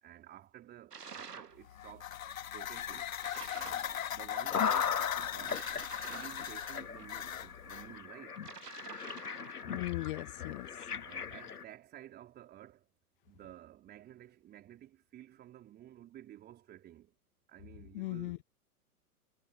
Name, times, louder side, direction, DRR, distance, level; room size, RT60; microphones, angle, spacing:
voice 1, 0.0-2.2 2.5-3.1 3.5-5.7 6.1-8.4 11.0-12.9 13.2-17.1 17.5-18.4, right 12 dB, 20° right, 3.6 m, -53 dB
sound 1, 0.9-1.6 3.2-3.9 5.4-7.1 8.4-9.7, right 6 dB, 80° right, 1.3 m, -48 dB
sound 2, 1.6-7.9, left 10 dB, 55° left, 1.9 m, -39 dB
sound 3, 4.5-5.8 6.4-6.5 6.7-11.6, left 7 dB, 75° left, 1.3 m, -37 dB
voice 2, 9.6-10.9 17.9-18.4, left 20 dB, 35° left, 1.2 m, -38 dB
figure-of-eight pair, 115°, 47 cm